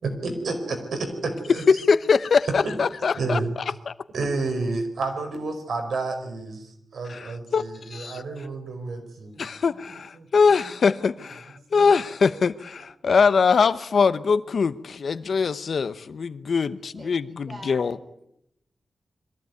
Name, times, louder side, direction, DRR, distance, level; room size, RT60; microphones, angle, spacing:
voice 1, 0.0-1.6 2.6-2.7 3.1-3.5 4.1-9.8 10.1-10.3 10.6-10.7 11.7-12.0 12.3-12.4, right 3 dB, 85° right, 5 dB, 5.0 m, -30 dB
voice 2, 1.7-3.4 3.9-4.0 7.1-7.6 7.9-8.2 9.4-18.0, left 5 dB, 65° left, 14 dB, 0.9 m, -22 dB
voice 3, 16.8-18.2, right 1 dB, 35° right, 6 dB, 5.2 m, -45 dB
22.0 x 15.5 x 9.4 m, 0.78 s
wide cardioid pair, 140°, 0 cm